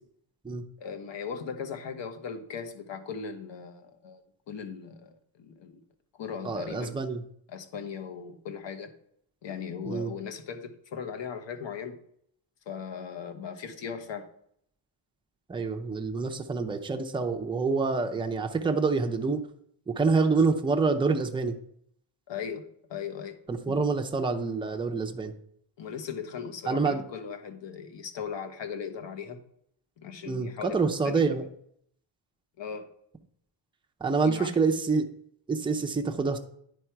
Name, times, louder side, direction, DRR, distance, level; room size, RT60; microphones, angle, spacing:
voice 1, 0.8-4.2 4.5-5.8 6.2-6.9 7.5-8.9 9.4-12.0 12.7-14.3 22.3-23.4 23.6-23.8 25.8-29.4 30.0-31.3 32.6-32.9 34.2-34.5, left 6 dB, 60° left, 7 dB, 1.1 m, -38 dB
voice 2, 6.4-7.2 9.9-10.1 15.5-19.4 19.9-21.6 23.5-25.3 26.7-27.0 30.3-31.4 34.0-35.0 35.5-36.4, right 4 dB, 10° right, 4 dB, 0.5 m, -27 dB
9.8 x 4.8 x 4.5 m, 0.67 s
wide cardioid pair, 175°, 49 cm